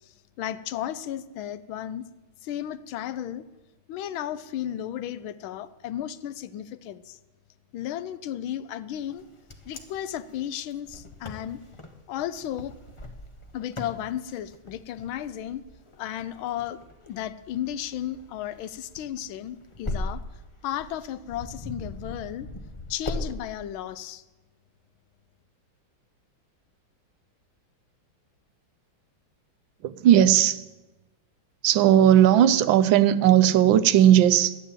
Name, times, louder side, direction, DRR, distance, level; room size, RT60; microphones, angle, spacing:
voice 1, 0.0-2.1 2.4-3.4 3.9-7.2 7.7-9.2 9.6-11.6 12.1-12.8 13.5-15.6 16.0-20.2 20.6-22.5 22.9-24.2, left 11 dB, 85° left, 1.5 m, -34 dB
Wind, 9.1-23.3, left 2 dB, 25° left, 0.7 m, -40 dB
voice 2, 29.8-30.6 31.6-34.6, right 11 dB, 75° right, 1.4 m, -17 dB
12.0 x 9.1 x 9.0 m
omnidirectional pair, 2.2 m